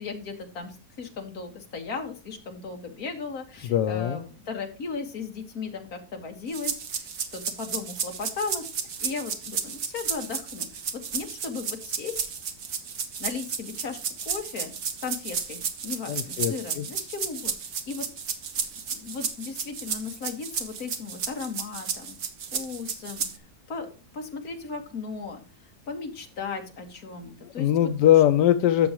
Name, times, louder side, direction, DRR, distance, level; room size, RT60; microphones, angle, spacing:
voice 1, 0.0-10.7 10.9-12.2 13.2-14.0 14.3-17.5 17.9-18.1 18.9-22.2 22.5-23.3 23.7-23.9 24.1-25.4 25.9-27.7, left 5 dB, 60° left, 3 dB, 2.1 m, -36 dB
voice 2, 3.7-4.2 16.1-16.9 27.4-28.9, left 11 dB, 90° left, 9 dB, 1.3 m, -21 dB
sound 1, 6.5-23.4, right 6 dB, 65° right, 1.7 m, -33 dB
12.5 x 7.1 x 3.0 m, 0.34 s
omnidirectional pair, 1.8 m